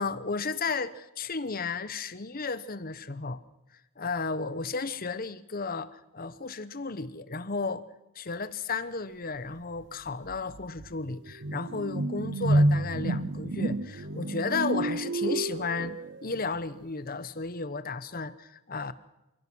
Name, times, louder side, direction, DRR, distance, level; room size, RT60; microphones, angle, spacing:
voice 1, 0.0-3.4 4.0-7.8 8.1-18.9, left 4 dB, 45° left, 14 dB, 1.0 m, -33 dB
sound 1, 9.8-9.9 10.3-16.4, right 1 dB, 55° right, 0.8 m, -29 dB
28.0 x 16.5 x 6.3 m, 0.94 s
head